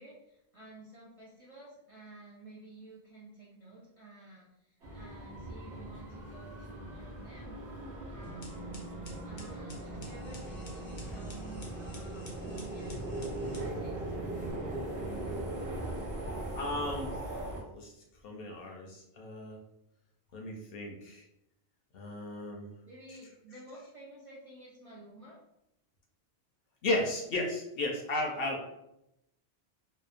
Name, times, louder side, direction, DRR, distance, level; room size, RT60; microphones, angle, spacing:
voice 1, 0.0-7.6 8.1-9.0 9.2-13.2 13.5-14.0 22.9-25.4, right 2 dB, 50° right, -6 dB, 0.4 m, -52 dB
sound 1, 4.8-17.6, right 1 dB, 80° right, 1.0 m, -40 dB
sound 2, 8.2-14.5, right 3 dB, 40° left, 0.4 m, -46 dB
voice 2, 16.6-17.4 17.7-17.9 18.2-19.6 20.3-21.2 21.9-22.7 26.8-28.6, left 2 dB, 65° left, 0 dB, 0.7 m, -34 dB
2.8 x 2.1 x 2.4 m, 0.83 s
omnidirectional pair, 1.1 m